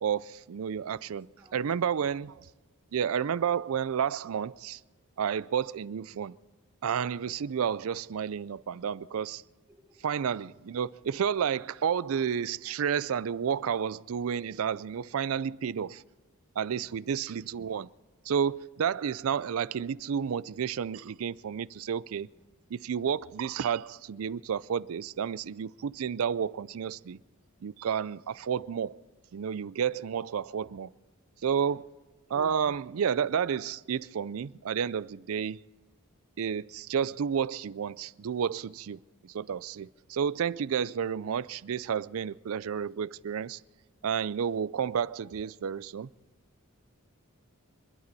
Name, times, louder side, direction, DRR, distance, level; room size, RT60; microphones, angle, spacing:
voice 1, 0.0-1.3 1.5-2.3 2.9-4.8 5.2-6.4 6.8-9.4 10.0-16.0 16.6-17.9 18.3-22.3 22.7-27.2 27.6-29.0 29.3-30.9 31.4-31.8 32.3-35.6 36.4-43.6 44.0-46.1, right 7 dB, 70° right, 0.4 m, -31 dB
voice 2, 1.1-2.1 9.7-10.1 22.3-22.4 31.4-31.9, right 1 dB, 10° right, 5.8 m, -64 dB
26.5 x 11.5 x 4.1 m
head